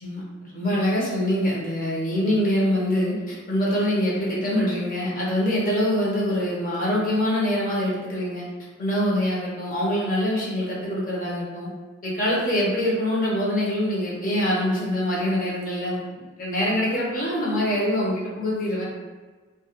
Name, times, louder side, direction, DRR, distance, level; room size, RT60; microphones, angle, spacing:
voice 1, 0.5-8.4 8.8-11.7 12.0-18.8, equal, 45° left, -5 dB, 0.7 m, -24 dB
2.3 x 2.1 x 2.8 m, 1.3 s
head